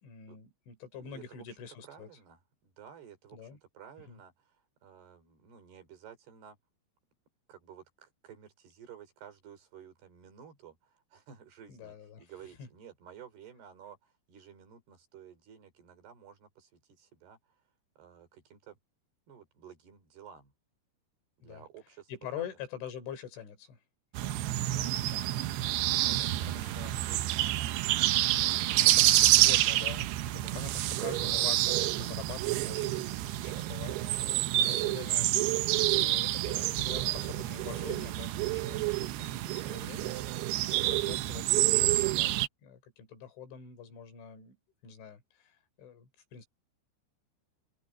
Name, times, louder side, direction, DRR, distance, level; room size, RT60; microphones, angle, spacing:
voice 1, 0.0-2.1 3.3-3.6 4.1-4.2 11.7-12.3 12.6-12.7 21.4-21.7 22.1-23.8 24.2-24.4 24.8-25.3 26.1-27.0 28.4-40.2 40.9-42.4 42.6-44.6 44.8-46.5, left 8 dB, 70° left, 5.9 m, -45 dB
voice 2, 0.9-1.6 1.8-4.6 4.8-6.6 7.5-17.4 18.0-18.8 19.3-20.5 21.4-22.1 22.4-22.5 24.7-24.9 25.8-27.3 42.0-42.3, right 8 dB, 55° right, 5.3 m, -53 dB
sound 1, 24.1-42.5, right 15 dB, 80° right, 2.4 m, -28 dB
omnidirectional pair, 5.7 m